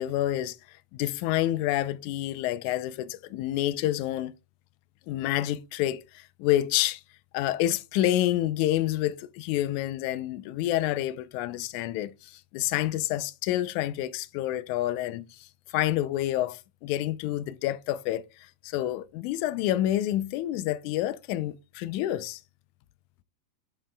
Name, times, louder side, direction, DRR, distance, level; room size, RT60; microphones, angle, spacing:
voice 1, 0.0-4.3 5.1-7.0 7.3-22.4, left 13 dB, 80° left, 1.9 m, -28 dB
9.1 x 8.1 x 2.2 m
omnidirectional pair, 3.6 m